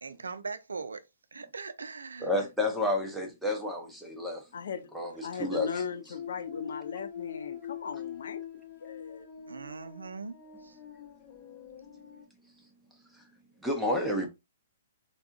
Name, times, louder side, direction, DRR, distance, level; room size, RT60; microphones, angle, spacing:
voice 1, 0.0-1.0 1.3-2.3 5.3-5.4 9.5-10.4 10.6-10.8, right 4 dB, 80° right, 0.4 m, -40 dB
voice 2, 2.2-4.4 4.9-5.7 13.6-14.3, left 1 dB, ahead, 0.7 m, -30 dB
voice 3, 4.5-4.9 5.2-8.4 8.8-9.3, left 6 dB, 65° left, 0.4 m, -38 dB
sound 1, 6.1-12.3, left 8 dB, 30° left, 0.9 m, -43 dB
3.5 x 2.3 x 2.3 m
hypercardioid pair, 125°, 0 cm